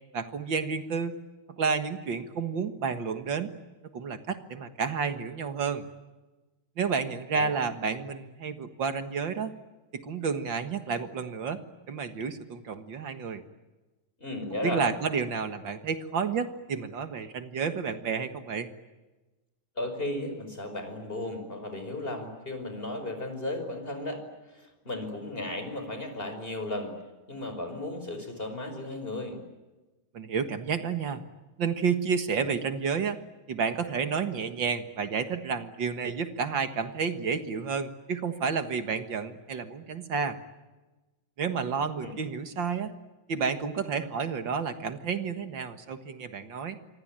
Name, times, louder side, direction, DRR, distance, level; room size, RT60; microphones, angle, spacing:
voice 1, 0.1-1.2 1.5-3.5 3.9-5.9 6.8-9.5 9.9-11.6 11.9-13.4 14.6-18.7 30.1-31.2 31.6-33.2 33.5-40.4 41.4-42.9 43.3-46.8, right 5 dB, 65° right, 9 dB, 2.2 m, -30 dB
voice 2, 14.2-14.8 19.8-26.9 27.3-29.4 42.0-42.2, left 1 dB, 25° left, 7 dB, 5.5 m, -35 dB
27.0 x 24.5 x 8.9 m, 1.2 s
omnidirectional pair, 2.3 m